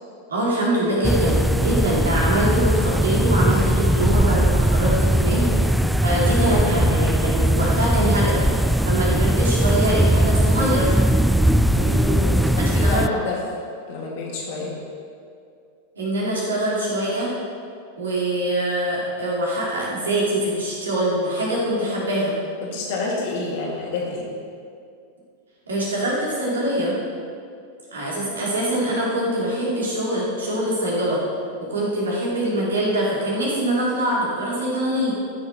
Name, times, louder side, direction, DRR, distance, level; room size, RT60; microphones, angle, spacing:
voice 1, 0.3-5.5 6.0-11.0 12.6-13.1 16.0-17.3 18.0-22.3 25.7-26.9 27.9-31.2 31.7-35.1, right 1 dB, 70° right, -5 dB, 3.0 m, -23 dB
sound 1, 1.0-13.1, right 1 dB, ahead, 0.3 m, -19 dB
voice 2, 11.7-13.4 13.9-14.7 22.6-24.3, left 3 dB, 55° left, -3 dB, 2.7 m, -28 dB
14.5 x 6.6 x 4.5 m, 2.3 s
figure-of-eight pair, 90°, 0 cm